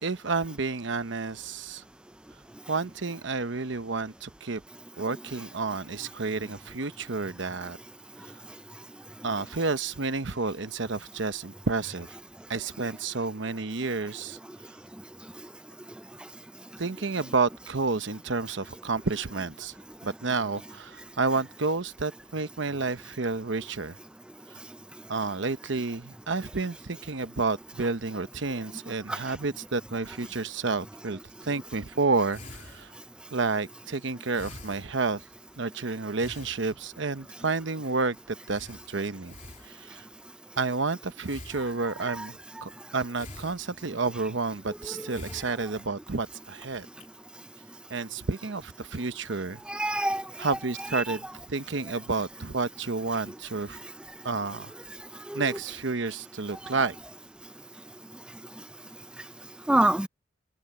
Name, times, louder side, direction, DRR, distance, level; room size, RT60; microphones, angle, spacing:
voice 1, 0.0-1.8 2.7-4.6 5.0-7.8 8.2-8.3 9.2-12.1 12.5-14.4 16.8-19.8 20.0-24.0 25.1-32.9 33.3-35.2 35.6-39.3 39.6-40.1 40.6-46.9 47.9-49.6 50.4-51.2 51.5-53.8 54.2-54.7 55.3-57.0, right 3 dB, 65° right, 0.9 m, -30 dB
sound 1, 32.3-35.6 36.2-37.1 37.6-37.8 38.0-38.1 38.5-40.1 41.2-42.2 43.1-44.1 44.8-46.3 46.7-47.1, left 2 dB, 40° left, 3.4 m, -47 dB
voice 2, 49.7-51.2 55.3-55.6 56.8-56.9 59.7-60.1, right 1 dB, 5° right, 0.4 m, -27 dB
head